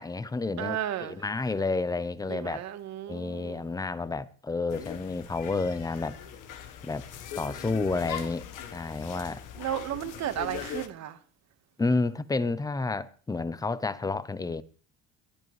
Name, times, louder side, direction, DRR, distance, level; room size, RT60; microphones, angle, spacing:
voice 1, 0.0-2.7 3.1-6.2 6.8-7.1 7.4-8.5 8.7-9.4 11.8-14.6, left 3 dB, 10° left, 0.7 m, -30 dB
voice 2, 0.6-1.2 2.3-3.6 9.6-11.2, right 11 dB, 55° right, 1.5 m, -34 dB
sound 1, 4.7-10.9, left 8 dB, 70° left, 1.4 m, -41 dB
20.0 x 11.0 x 3.2 m
cardioid pair, 115°, 33 cm